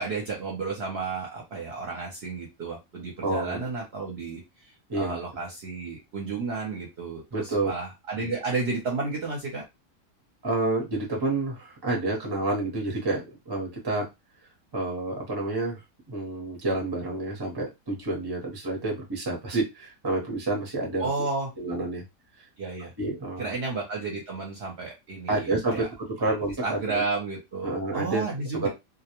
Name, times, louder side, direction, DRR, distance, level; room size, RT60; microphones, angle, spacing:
voice 1, 0.0-9.6 21.0-21.5 22.6-22.9 23.4-25.9 26.2-26.3 26.6-28.7, right 3 dB, 55° right, -1 dB, 0.8 m, -32 dB
voice 2, 3.2-3.6 4.9-5.2 7.3-7.7 8.2-8.3 10.4-14.1 14.7-15.8 16.1-21.3 21.6-22.0 23.0-23.5 25.3-27.0 27.6-28.2 28.6-28.7, right 2 dB, 25° right, 0 dB, 0.6 m, -29 dB
2.3 x 2.1 x 2.9 m, 0.22 s
omnidirectional pair, 1.4 m